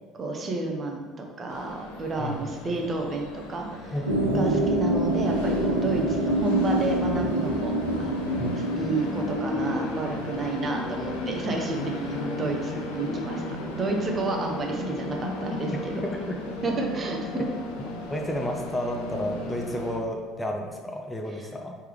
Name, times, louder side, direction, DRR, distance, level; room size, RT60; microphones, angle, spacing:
voice 1, 0.1-3.9 4.3-7.7 8.0-13.4 13.7-16.0 16.6-17.5 21.4-21.5, right 2 dB, 35° right, 1 dB, 0.7 m, -31 dB
Train, 1.5-20.0, left 1 dB, 70° left, 0.5 m, -34 dB
voice 2, 2.2-2.5 3.9-4.6 8.4-8.5 16.0-16.4 18.1-21.8, left 1 dB, 15° left, 2 dB, 0.5 m, -31 dB
sound 1, 4.1-9.3, right 1 dB, 85° right, 0.4 m, -26 dB
4.6 x 3.3 x 3.0 m, 1.4 s
figure-of-eight pair, 60°, 0 cm